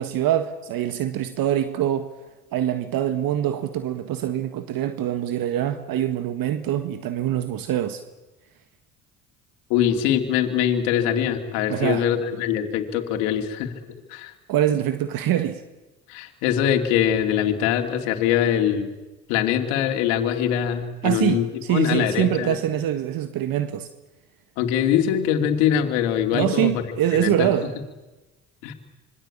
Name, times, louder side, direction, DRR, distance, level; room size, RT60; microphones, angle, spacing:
voice 1, 0.0-2.1 2.5-8.0 11.7-12.1 14.5-15.6 21.0-23.9 26.3-27.7, right 11 dB, 65° right, 1.7 m, -24 dB
voice 2, 9.7-13.7 14.1-14.3 16.1-18.9 19.3-22.6 24.6-26.8 27.1-27.5 28.6-28.7, left 9 dB, 80° left, 2.9 m, -23 dB
26.5 x 23.5 x 8.8 m
hypercardioid pair, 65°, 37 cm